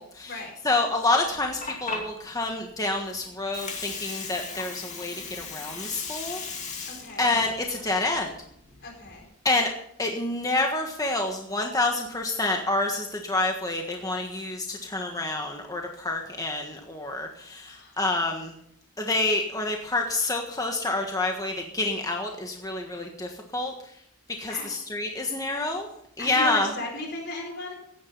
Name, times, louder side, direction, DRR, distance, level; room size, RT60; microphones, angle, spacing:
voice 1, 0.0-6.4 7.2-8.3 9.4-9.7 10.0-18.5 19.0-23.7 24.4-25.9 26.2-26.7, left 2 dB, 15° left, 2 dB, 1.5 m, -28 dB
Water, 1.3-9.2, left 4 dB, 30° left, 2.5 m, -38 dB
voice 2, 6.8-7.3 8.8-9.2 17.7-17.9 24.5-24.7 26.2-27.7, left 2 dB, 50° left, 1 dB, 4.4 m, -36 dB
16.5 x 10.5 x 5.5 m, 0.71 s
head